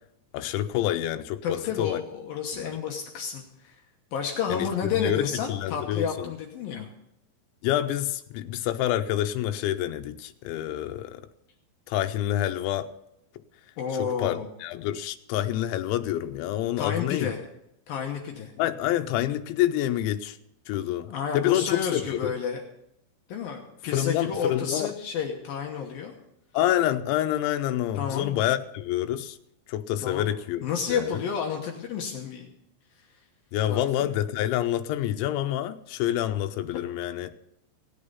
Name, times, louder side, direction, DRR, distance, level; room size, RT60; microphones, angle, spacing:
voice 1, 0.3-2.0 2.5-2.7 4.5-6.3 7.6-11.3 11.9-12.9 14.0-17.4 18.6-20.4 20.7-22.3 23.9-24.9 26.5-29.4 29.7-31.2 33.5-37.3, left 12 dB, 85° left, 3.0 m, -27 dB
voice 2, 1.4-3.8 4.1-6.9 13.8-14.5 16.8-17.4 17.9-18.5 21.0-22.6 23.3-26.1 28.0-28.4 30.0-30.3 30.6-32.5 33.6-34.1, left 7 dB, 70° left, 2.4 m, -31 dB
17.0 x 8.7 x 5.6 m
omnidirectional pair, 5.3 m